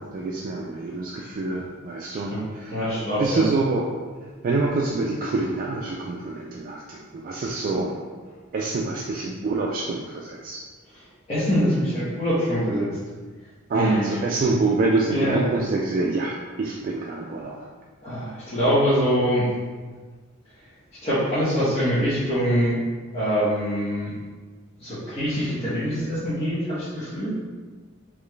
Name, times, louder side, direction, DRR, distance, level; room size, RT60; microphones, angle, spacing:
voice 1, 0.0-2.8 3.2-3.9 4.4-7.9 8.5-10.6 13.7-17.7, right 3 dB, 40° right, -1 dB, 0.3 m, -26 dB
voice 2, 2.7-3.5 11.3-12.9 13.7-14.1 14.5-14.6 15.1-15.4 18.0-19.5 21.0-22.8 23.1-24.1 24.8-27.3, equal, 30° left, -12 dB, 1.1 m, -24 dB
4.0 x 3.1 x 3.2 m, 1.4 s
head